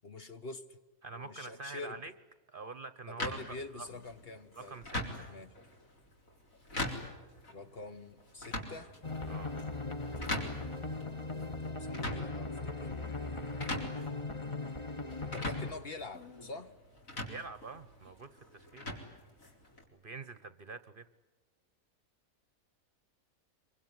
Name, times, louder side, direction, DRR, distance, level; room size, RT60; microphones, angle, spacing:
voice 1, 0.0-0.8 1.1-2.0 3.1-4.8 5.3-5.5 7.5-8.9 11.2-14.0 15.2-16.7, left 3 dB, 45° left, 9 dB, 1.3 m, -46 dB
voice 2, 1.0-2.1 2.5-3.4 3.7-3.9 4.6-5.0 9.3-9.5 17.3-18.9 19.9-21.0, right 4 dB, 40° right, 13 dB, 1.1 m, -45 dB
sound 1, 3.2-19.8, left 1 dB, 65° left, 4.7 m, -43 dB
sound 2, 9.0-15.7, left 3 dB, 20° left, 1.2 m, -39 dB
25.5 x 24.0 x 9.6 m, 1.2 s
omnidirectional pair, 1.5 m